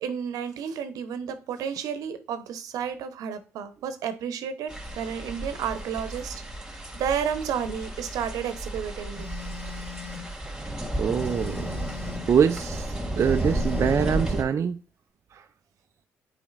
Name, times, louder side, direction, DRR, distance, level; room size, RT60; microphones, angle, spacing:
voice 1, 0.0-6.4 6.9-9.3, right 7 dB, 75° right, 10 dB, 0.9 m, -31 dB
sound 1, 4.7-14.4, right 1 dB, 5° right, 2.6 m, -33 dB
Telephone, 9.2-10.3 11.2-12.3 13.2-14.3, left 9 dB, 20° left, 2.7 m, -41 dB
voice 2, 11.0-11.8 12.3-14.8 15.3-15.4, right 7 dB, 50° right, 7 dB, 0.5 m, -24 dB
8.5 x 4.9 x 2.5 m, 0.37 s
supercardioid pair, 55°, 6 cm